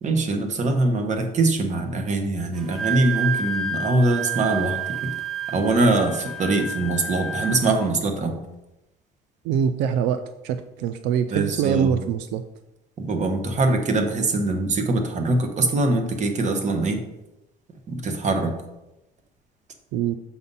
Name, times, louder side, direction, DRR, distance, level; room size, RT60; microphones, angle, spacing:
voice 1, 0.0-5.1 5.5-8.4 11.3-12.0 13.0-17.0 17.9-18.5, right 2 dB, 45° right, 5 dB, 1.2 m, -23 dB
Wind instrument woodwind instrument, 2.6-7.9, right 4 dB, ahead, 0.8 m, -30 dB
voice 2, 9.4-12.4 19.9-20.2, right 8 dB, 90° right, 10 dB, 0.4 m, -24 dB
6.7 x 4.1 x 5.4 m, 0.94 s
cardioid pair, 110°, 17 cm